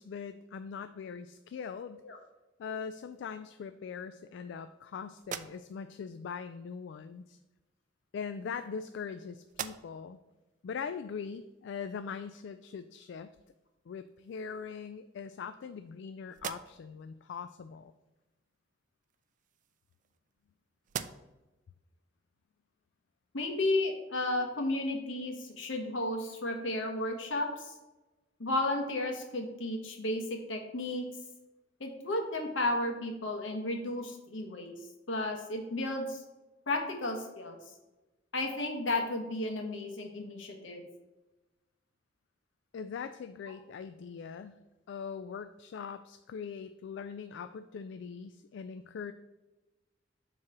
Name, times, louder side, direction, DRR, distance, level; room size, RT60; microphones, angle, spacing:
voice 1, 0.0-2.0 2.6-7.4 8.1-10.2 10.6-13.4 13.9-17.9 42.7-44.6 44.9-49.1, left 6 dB, 65° left, 10 dB, 0.3 m, -41 dB
sound 1, 5.2-6.0 7.1-7.3 8.2-9.1 9.4-10.2 10.7-10.8 13.4-13.5 14.0-14.7 15.2-16.0 16.3-17.0 19.0-20.5 20.8-21.5, right 8 dB, 45° right, 0.3 m, -44 dB
voice 2, 23.3-27.7 28.4-30.2 30.5-31.1 31.8-34.7 35.1-36.2 36.7-37.6 38.3-40.8, left 2 dB, 80° left, 4 dB, 1.2 m, -33 dB
7.3 x 3.1 x 5.9 m, 1.0 s
head